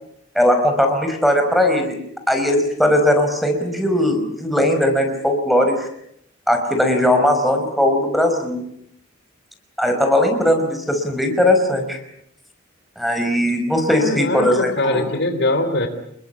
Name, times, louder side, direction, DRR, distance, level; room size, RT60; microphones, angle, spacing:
voice 1, 0.3-2.0 2.3-5.9 6.5-8.6 9.8-12.0 13.0-15.1, left 1 dB, ahead, 6 dB, 5.0 m, -18 dB
voice 2, 14.0-15.9, left 2 dB, 55° left, 8 dB, 3.4 m, -22 dB
29.0 x 22.0 x 8.4 m, 0.72 s
head